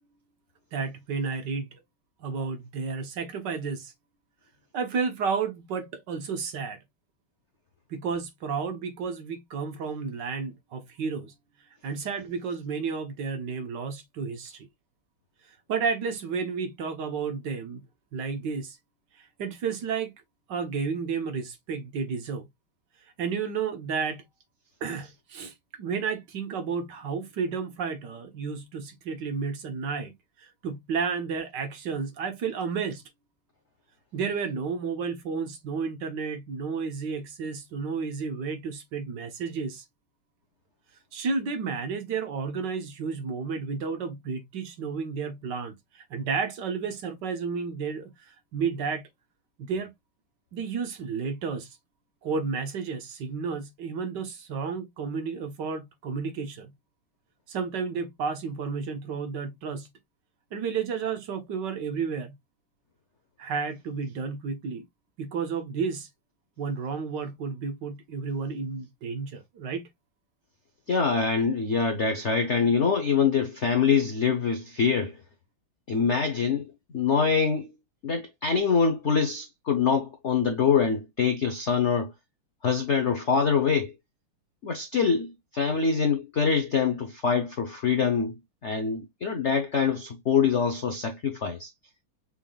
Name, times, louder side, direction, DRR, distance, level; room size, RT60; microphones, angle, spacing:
voice 1, 0.7-1.8 2.2-3.9 4.7-6.8 7.9-11.3 11.8-14.7 15.7-17.8 18.1-18.8 19.2-20.1 20.5-22.5 23.2-24.2 24.8-33.0 34.1-39.8 41.1-49.0 49.6-49.9 50.5-51.8 52.2-56.7 57.5-59.9 60.5-62.3 63.4-64.9 65.2-66.1 66.6-69.9, right 5 dB, 60° right, 1.5 m, -32 dB
voice 2, 70.9-75.2 75.9-77.7 78.0-82.1 82.6-83.9 84.6-88.3 88.6-91.7, left 6 dB, 70° left, 0.6 m, -24 dB
6.3 x 3.6 x 2.3 m
omnidirectional pair, 2.4 m